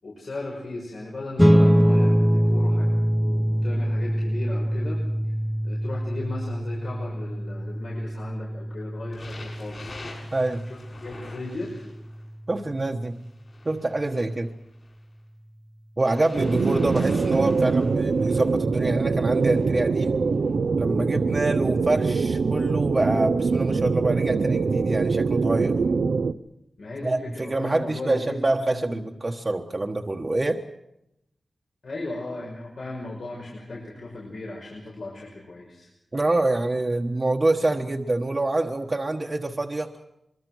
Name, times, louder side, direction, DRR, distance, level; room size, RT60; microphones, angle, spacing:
voice 1, 0.0-5.0 5.6-9.9 10.7-11.7 26.8-29.1 31.8-35.9, left 2 dB, 80° left, -3 dB, 6.0 m, -36 dB
sound 1, 1.4-12.2, equal, 5° left, 0.7 m, -24 dB
sound 2, 9.1-12.2 13.1-15.0 16.0-18.6 19.3-19.7 20.5-20.6, left 2 dB, 55° left, 7.2 m, -45 dB
voice 2, 10.3-10.7 12.5-13.2 13.6-14.5 16.0-20.2 20.8-25.8 27.0-30.6 36.1-39.9, right 2 dB, 35° right, 1 dB, 1.3 m, -26 dB
sound 3, 16.4-26.3, right 4 dB, 85° right, 0.8 m, -23 dB
24.5 x 23.5 x 6.3 m, 0.84 s
wide cardioid pair, 110°, 0 cm